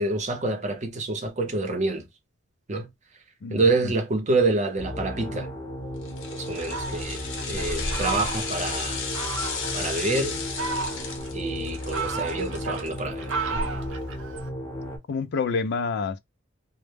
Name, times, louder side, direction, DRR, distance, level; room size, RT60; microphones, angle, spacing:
voice 1, 0.0-2.1 2.7-2.9 3.5-5.5 6.3-9.0 9.7-10.4 11.3-13.7, right 3 dB, 40° right, 0.6 m, -27 dB
voice 2, 3.4-3.9 15.1-16.2, left 4 dB, 60° left, 0.4 m, -28 dB
sound 1, 4.8-15.0, left 1 dB, 15° left, 0.7 m, -34 dB
sound 2, 6.0-13.3 13.7-13.8, left 5 dB, 75° left, 0.8 m, -35 dB
Fowl, 6.6-8.7 9.1-9.8 10.3-11.3 11.7-14.5, right 3 dB, 85° right, 0.5 m, -33 dB
2.1 x 2.0 x 3.2 m
head